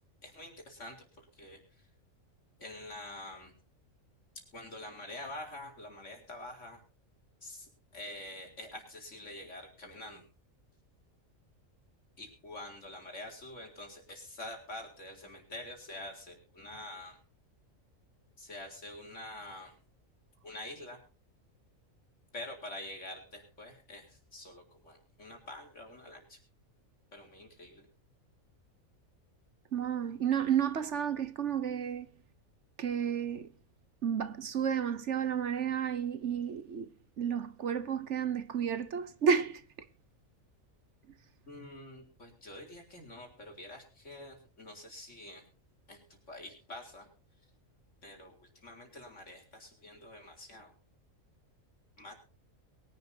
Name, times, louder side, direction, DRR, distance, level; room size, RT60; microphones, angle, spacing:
voice 1, 0.2-1.8 2.6-3.5 4.5-6.8 7.4-10.2 12.2-17.2 18.4-19.8 20.4-21.0 22.3-26.4 27.1-27.9 41.5-45.5 45.9-47.1 48.0-50.7 52.0-52.1, left 1 dB, 65° left, 4.5 m, -46 dB
voice 2, 29.7-32.1 32.8-33.5 34.0-36.9 37.2-39.6, right 8 dB, 60° right, 1.2 m, -31 dB
22.5 x 11.0 x 2.8 m
omnidirectional pair, 1.4 m